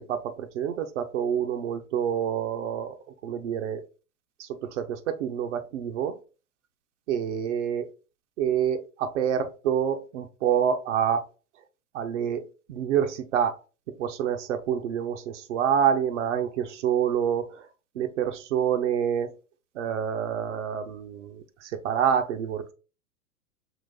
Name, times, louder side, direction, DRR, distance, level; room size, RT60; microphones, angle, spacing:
voice 1, 0.0-2.9 3.2-3.8 4.4-6.2 7.1-7.9 8.4-11.2 11.9-13.6 13.9-17.7 17.9-19.3 19.7-22.7, right 8 dB, 55° right, 0.8 m, -27 dB
5.8 x 2.5 x 3.6 m
figure-of-eight pair, 100°, 43 cm